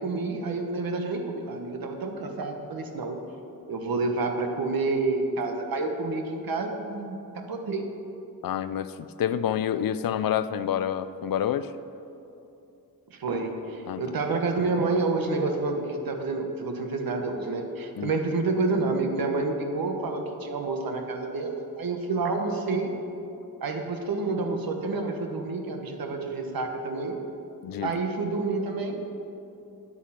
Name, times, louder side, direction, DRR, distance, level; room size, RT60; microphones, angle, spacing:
voice 1, 0.0-3.2 3.7-7.8 13.1-22.9 23.6-27.2 27.8-29.0, right 3 dB, 70° right, 4 dB, 1.3 m, -29 dB
voice 2, 8.4-11.7 13.9-14.0 17.9-18.2 27.6-27.9, left 9 dB, 70° left, 13 dB, 0.5 m, -28 dB
10.0 x 8.3 x 5.8 m, 2.8 s
wide cardioid pair, 100°, 36 cm